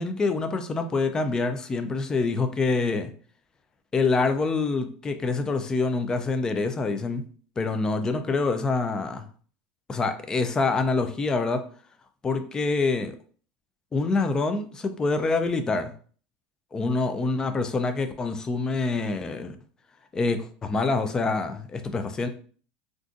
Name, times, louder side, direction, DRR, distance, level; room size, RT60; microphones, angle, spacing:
voice 1, 0.0-3.1 3.9-7.2 7.6-9.2 9.9-11.6 12.2-13.1 13.9-15.9 16.7-19.6 20.1-22.3, left 3 dB, 15° left, 8 dB, 0.3 m, -26 dB
2.4 x 2.4 x 3.8 m, 0.43 s
supercardioid pair, 140°, 4 cm